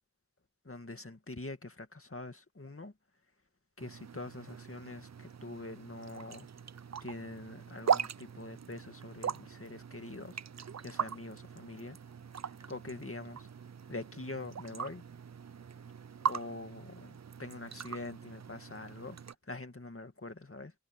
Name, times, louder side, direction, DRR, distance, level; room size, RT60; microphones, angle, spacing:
voice 1, 0.6-2.9 3.8-6.5 7.0-12.0 12.4-13.5 13.9-15.0 16.2-19.2 19.4-20.7, left 2 dB, 45° left, 2.2 m, -44 dB
sound 1, 3.8-19.4, right 7 dB, 60° right, 0.5 m, -40 dB
wide cardioid pair, 50°, 30 cm